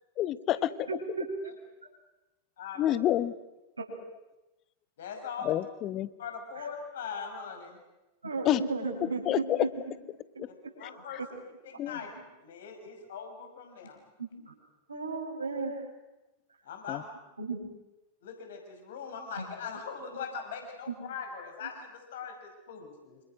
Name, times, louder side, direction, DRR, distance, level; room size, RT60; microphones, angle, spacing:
voice 1, 0.2-0.7 2.8-3.3 5.4-6.1 8.4-8.6 9.2-9.7 10.4-10.5 10.8-10.9 11.8-12.0 16.9-17.0, left 13 dB, 35° left, 16 dB, 1.1 m, -28 dB
voice 2, 0.9-1.2 3.8-3.9 8.2-9.7 10.3-10.7 12.0-12.1 14.2-14.5 14.9-15.7 17.4-17.6 19.4-19.5, right 4 dB, 80° right, -2 dB, 6.3 m, -34 dB
voice 3, 5.0-5.6 6.2-7.8 10.5-11.2 11.6-12.1 12.4-14.0 16.6-17.1 18.2-23.2, left 6 dB, 60° left, 4 dB, 5.7 m, -41 dB
27.5 x 27.0 x 6.3 m, 1.0 s
figure-of-eight pair, 90°, 0 cm